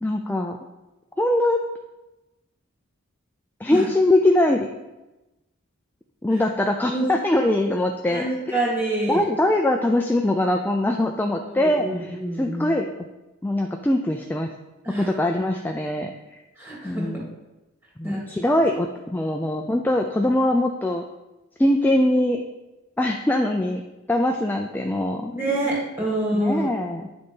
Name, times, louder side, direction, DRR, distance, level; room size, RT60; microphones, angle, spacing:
voice 1, 0.0-0.6 1.2-1.6 3.6-4.7 6.2-8.6 9.1-12.9 13.4-14.5 15.0-16.4 16.8-17.3 18.0-21.0 21.6-22.4 23.0-23.8 24.1-25.3 26.3-27.1, left 1 dB, 10° left, 3 dB, 0.3 m, -22 dB
voice 2, 8.1-9.2 11.5-12.7 14.8-15.1 16.6-17.1 18.0-18.2 25.3-26.7, right 1 dB, 10° right, -6 dB, 2.3 m, -26 dB
9.5 x 4.0 x 5.2 m, 1.1 s
head